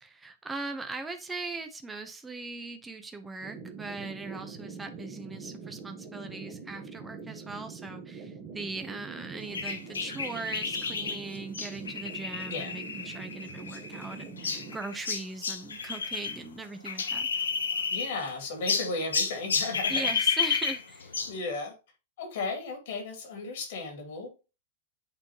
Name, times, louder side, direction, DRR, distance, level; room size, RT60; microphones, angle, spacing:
voice 1, 0.0-17.5 19.9-21.2, right 3 dB, 10° right, 0.8 m, -40 dB
sound 1, 3.4-14.8, right 5 dB, 35° right, 1.3 m, -44 dB
sound 2, 9.5-16.4 16.6-18.3 18.7-21.4, left 6 dB, 85° left, 0.9 m, -31 dB
voice 2, 17.9-20.1 21.3-21.7 22.2-24.3, left 3 dB, 65° left, 2.2 m, -35 dB
8.9 x 3.7 x 2.9 m
hypercardioid pair, 100°, 0 cm